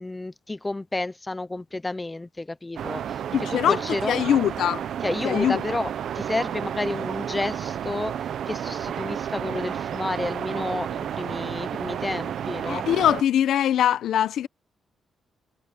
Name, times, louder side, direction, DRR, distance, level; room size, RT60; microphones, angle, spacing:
voice 1, 0.0-3.2 3.5-4.2 5.0-5.9 6.1-12.9, left 2 dB, 20° left, 0.9 m, -30 dB
sound 1, 2.8-13.2, right 9 dB, 70° right, 0.8 m, -31 dB
voice 2, 3.3-4.8 5.2-5.6 12.7-14.5, left 10 dB, 80° left, 1.0 m, -22 dB
cardioid pair, 70°, 0 cm